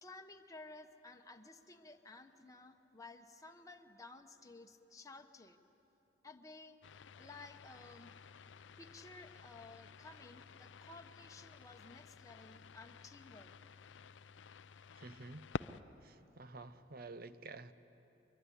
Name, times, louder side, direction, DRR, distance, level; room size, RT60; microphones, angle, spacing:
voice 1, 0.0-5.6 6.2-6.8 7.2-8.1 8.8-13.5, left 3 dB, 20° left, 5 dB, 1.0 m, -55 dB
sound 1, 6.8-15.8, left 5 dB, 80° left, 0.5 m, -51 dB
voice 2, 15.0-15.5 16.0-17.7, right 3 dB, 55° right, 12 dB, 0.8 m, -50 dB
24.0 x 22.5 x 9.9 m, 2.9 s
head